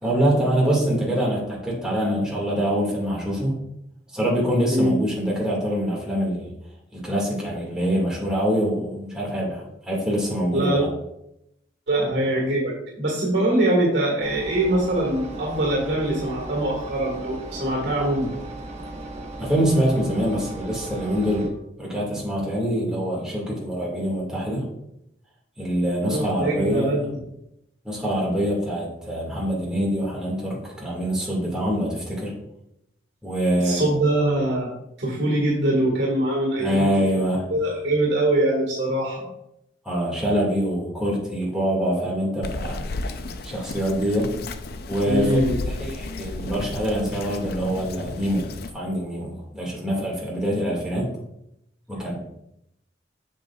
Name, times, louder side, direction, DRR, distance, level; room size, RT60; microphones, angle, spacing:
voice 1, 0.0-3.5 4.1-6.5 6.9-10.9 19.4-21.5 21.8-24.6 25.6-27.0 27.8-32.3 33.2-33.9 36.6-37.4 39.8-42.8 43.4-44.3 44.9-45.4 45.7-48.5 48.7-51.1 51.9-52.1, equal, 5° right, -4 dB, 2.0 m, -24 dB
voice 2, 10.5-10.8 11.9-18.3 26.0-27.2 33.6-34.7 35.0-36.9 37.1-37.2 37.5-39.3 45.0-45.6, right 1 dB, 70° right, -1 dB, 1.8 m, -23 dB
Engine, 14.2-21.5, right 2 dB, 40° right, 1.1 m, -37 dB
Bird vocalization bird call bird song, 42.4-48.7, left 2 dB, 55° left, 0.5 m, -33 dB
7.7 x 6.5 x 2.4 m, 0.81 s
head